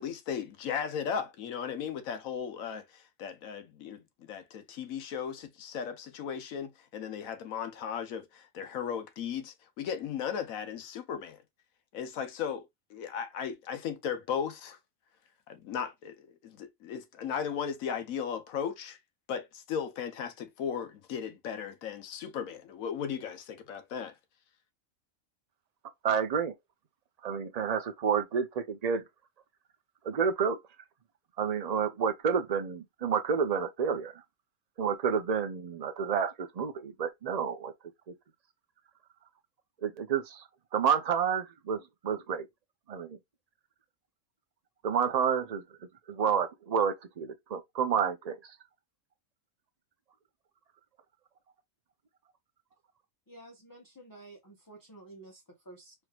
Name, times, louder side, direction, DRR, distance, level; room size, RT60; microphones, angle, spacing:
voice 1, 0.0-11.4 11.9-14.8 15.5-19.0 19.3-24.2, left 7 dB, 90° left, 1.2 m, -36 dB
voice 2, 26.0-26.5 27.2-29.0 30.0-30.6 31.4-34.1 34.8-37.7 39.8-40.4 40.7-42.5 42.9-43.2 44.8-45.6 46.1-48.4, right 7 dB, 40° right, 0.6 m, -29 dB
voice 3, 53.3-55.9, right 2 dB, 15° left, 0.9 m, -51 dB
4.6 x 3.2 x 2.3 m
omnidirectional pair, 1.4 m